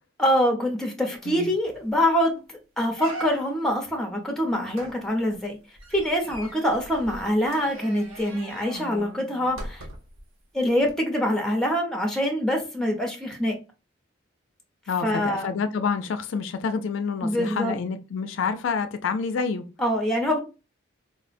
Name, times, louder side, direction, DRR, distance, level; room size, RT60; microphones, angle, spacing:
voice 1, 0.2-5.6 5.9-9.9 10.5-13.6 15.0-15.5 17.2-17.8 19.8-20.4, equal, 5° left, 0.6 m, -25 dB
sound 1, 1.2-1.3 1.7-2.0 2.4-2.5 3.0-3.7 4.7-10.2 10.8-10.9, right 2 dB, 85° right, 0.8 m, -41 dB
voice 2, 14.9-19.6, left 5 dB, 70° left, 0.4 m, -28 dB
4.1 x 2.0 x 2.5 m
head